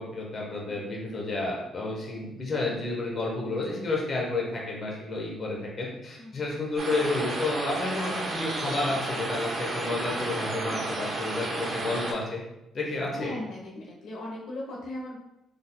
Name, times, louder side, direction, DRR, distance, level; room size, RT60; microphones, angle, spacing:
voice 1, 0.0-12.4 12.7-13.3, left 2 dB, 45° left, -2 dB, 1.0 m, -31 dB
sound 1, 6.8-12.1, right 2 dB, 50° right, 0.9 m, -32 dB
voice 2, 13.2-15.2, left 1 dB, 80° left, -4 dB, 0.9 m, -38 dB
4.0 x 3.4 x 2.2 m, 0.90 s
cardioid pair, 90°, 0 cm